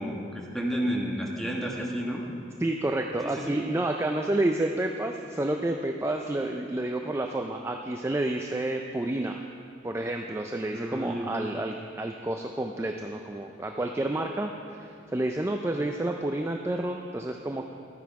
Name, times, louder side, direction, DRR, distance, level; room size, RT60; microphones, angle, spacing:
voice 1, 0.0-2.2 3.2-3.5 10.7-11.3, equal, ahead, -2 dB, 1.3 m, -31 dB
voice 2, 2.6-9.4 9.8-17.7, right 1 dB, 15° right, 3 dB, 0.4 m, -30 dB
12.5 x 9.4 x 4.7 m, 2.5 s
head